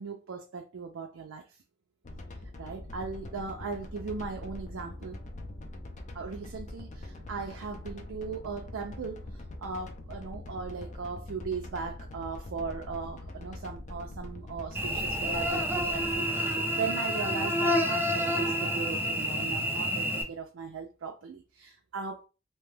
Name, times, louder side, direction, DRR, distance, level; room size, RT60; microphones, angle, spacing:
voice 1, 0.0-1.5 2.6-5.2 6.1-22.3, right 5 dB, 70° right, 0.4 m, -38 dB
sound 1, 2.0-16.2, left 1 dB, 35° left, 0.5 m, -43 dB
Cricket / Buzz, 14.7-20.2, equal, 10° right, 0.5 m, -29 dB
2.8 x 2.2 x 3.2 m
head